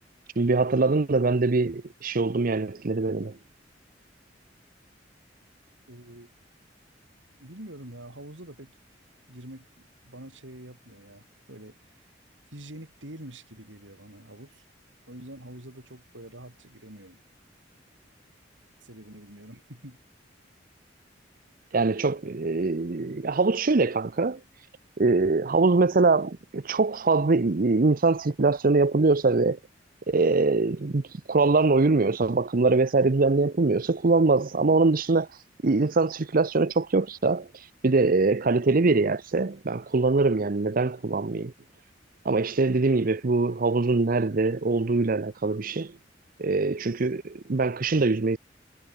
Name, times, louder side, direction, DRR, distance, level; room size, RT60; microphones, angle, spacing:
voice 1, 0.4-3.4 21.7-24.7 25.0-29.6 30.1-41.5 42.2-46.0 46.4-48.4, right 3 dB, 50° right, 0.7 m, -23 dB
voice 2, 5.9-6.3 7.4-8.8 9.3-11.7 12.5-14.6 15.1-17.2 18.8-20.0, right 1 dB, 85° right, 6.2 m, -45 dB
head